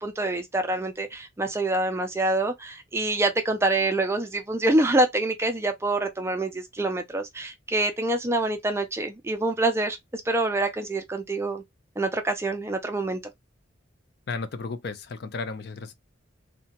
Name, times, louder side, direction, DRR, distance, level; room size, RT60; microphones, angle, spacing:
voice 1, 0.0-10.0 10.3-11.6 12.0-13.2, right 2 dB, 15° right, 0.3 m, -26 dB
voice 2, 14.3-15.9, left 4 dB, 55° left, 0.4 m, -34 dB
2.7 x 2.2 x 2.8 m
head